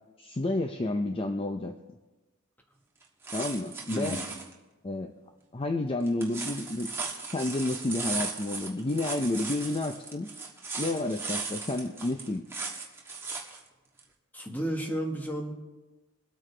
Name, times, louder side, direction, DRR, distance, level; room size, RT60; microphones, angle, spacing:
voice 1, 0.2-1.7 3.3-4.2 4.8-5.1 5.5-6.9 7.3-10.3 10.8-12.4, left 2 dB, 25° left, 5 dB, 0.5 m, -30 dB
sound 1, 3.0-4.5 6.1-13.6 14.0-14.1, right 4 dB, 10° right, 1.5 m, -37 dB
voice 2, 3.9-4.3 14.3-15.5, right 1 dB, 10° left, 2 dB, 1.5 m, -32 dB
23.0 x 8.7 x 3.3 m, 1.1 s
head